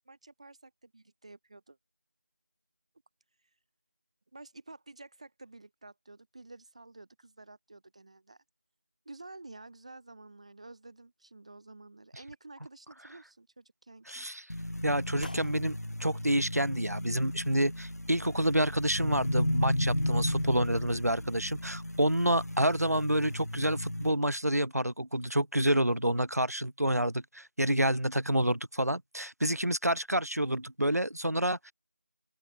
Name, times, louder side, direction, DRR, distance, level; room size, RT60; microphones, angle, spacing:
voice 1, 0.0-1.8 4.3-8.4 9.0-14.3, right 2 dB, 25° right, 3.0 m, -51 dB
voice 2, 14.1-14.4 14.8-31.7, right 1 dB, 85° right, 1.3 m, -28 dB
sound 1, 14.5-24.1, left 1 dB, 85° left, 1.5 m, -34 dB
sound 2, 15.2-23.9, left 2 dB, 30° left, 4.7 m, -56 dB
open air
figure-of-eight pair, 170°, 8 cm